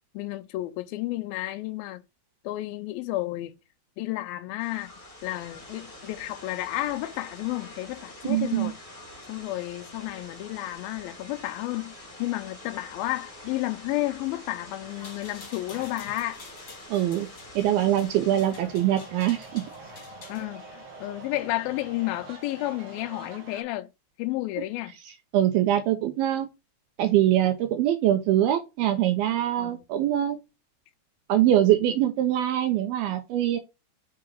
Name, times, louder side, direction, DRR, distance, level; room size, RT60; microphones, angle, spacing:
voice 1, 0.1-2.0 2.4-3.6 4.0-4.9 5.2-8.7 9.3-11.9 12.2-16.4 20.3-23.9 24.2-24.9 29.6-29.8, left 17 dB, 80° left, 2.3 m, -31 dB
sound 1, 4.6-18.4, left 1 dB, 20° left, 0.8 m, -46 dB
voice 2, 8.2-8.7 16.9-17.3 17.6-19.6 25.1-26.5 27.0-30.4 31.3-33.6, right 12 dB, 80° right, 2.4 m, -23 dB
sound 2, 14.9-20.4, left 4 dB, 40° left, 1.6 m, -48 dB
sound 3, 18.4-23.6, right 2 dB, 50° right, 2.4 m, -45 dB
5.6 x 3.9 x 5.3 m
omnidirectional pair, 4.6 m